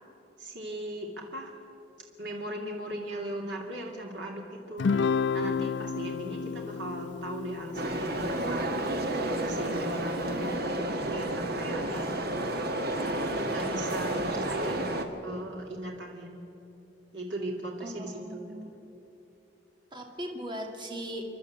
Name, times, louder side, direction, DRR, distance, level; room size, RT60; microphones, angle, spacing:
voice 1, 0.4-1.5 2.2-4.9 5.3-12.3 13.4-16.3 17.1-18.7, right 1 dB, 75° right, 0 dB, 2.7 m, -38 dB
Guitar, 4.8-9.4, left 5 dB, 90° left, 0.4 m, -31 dB
sound 1, 7.8-15.1, right 1 dB, 60° right, 1.7 m, -31 dB
voice 2, 17.8-18.7 19.9-21.2, equal, 25° right, 2 dB, 2.3 m, -38 dB
29.5 x 12.0 x 8.6 m, 2.8 s
head